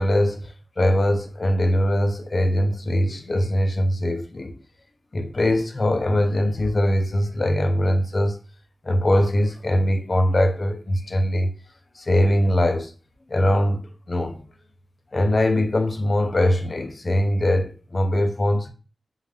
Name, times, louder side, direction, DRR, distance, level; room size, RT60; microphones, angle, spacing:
voice 1, 0.0-4.5 5.1-8.4 8.8-11.5 12.0-12.9 13.3-13.8 14.1-14.4 15.1-18.7, left 1 dB, 40° left, 0.6 m, -21 dB
3.6 x 2.7 x 3.3 m
wide cardioid pair, 100°, 0 cm